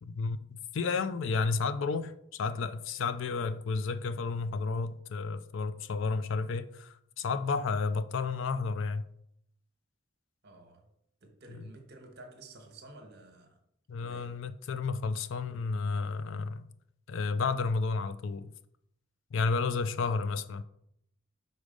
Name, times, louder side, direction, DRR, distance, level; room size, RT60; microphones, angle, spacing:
voice 1, 0.0-9.1 11.5-11.7 13.9-16.6 17.1-18.5 19.3-20.6, left 4 dB, 70° left, 0.4 m, -32 dB
voice 2, 10.4-10.9 11.2-13.6 14.0-14.4 20.0-20.1, right 2 dB, 55° right, 1.1 m, -52 dB
4.9 x 4.0 x 5.2 m
head